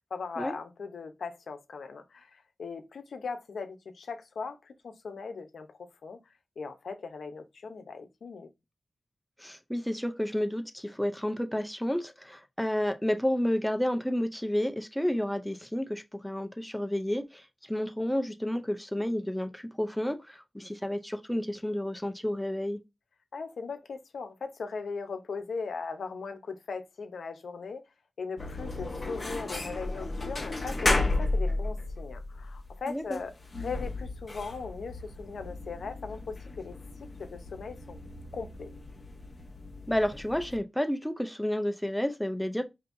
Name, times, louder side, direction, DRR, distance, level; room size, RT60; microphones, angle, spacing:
voice 1, 0.1-6.2 6.6-8.5 23.3-27.8 28.2-33.3 33.6-36.8 37.2-38.0 38.3-38.7, left 4 dB, 80° left, 0.7 m, -39 dB
voice 2, 9.4-22.8 32.9-33.2 39.9-42.6, equal, 5° left, 0.5 m, -31 dB
sound 1, 28.4-40.6, left 2 dB, 30° left, 0.9 m, -34 dB
5.1 x 2.7 x 2.6 m
wide cardioid pair, 140°, 0 cm